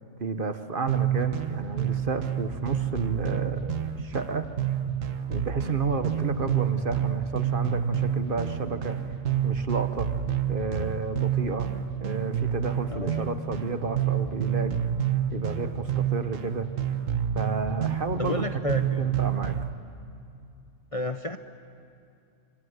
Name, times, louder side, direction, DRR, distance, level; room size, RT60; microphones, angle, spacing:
voice 1, 0.2-4.5 5.3-10.1 10.5-11.7 12.0-14.8 15.3-16.7 17.3-19.6, right 4 dB, 45° right, 9 dB, 1.1 m, -31 dB
sound 1, 0.9-19.7, right 9 dB, 80° right, 1.6 m, -29 dB
voice 2, 12.9-13.4 18.2-19.1 20.9-21.4, left 2 dB, 35° left, 8 dB, 0.6 m, -32 dB
28.0 x 25.5 x 8.0 m, 2.5 s
omnidirectional pair, 1.3 m